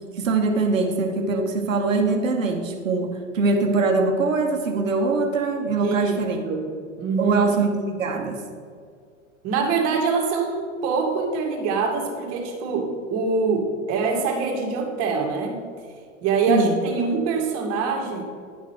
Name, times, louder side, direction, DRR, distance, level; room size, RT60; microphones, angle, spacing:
voice 1, 0.2-6.4 7.2-8.4 16.5-16.8, right 3 dB, 80° right, 3 dB, 1.2 m, -22 dB
voice 2, 5.8-6.2 6.4-6.7 7.0-7.4 9.4-15.6 16.2-18.2, right 4 dB, 40° right, 1 dB, 1.9 m, -24 dB
10.5 x 6.1 x 4.4 m, 2.2 s
hypercardioid pair, 105°, 39 cm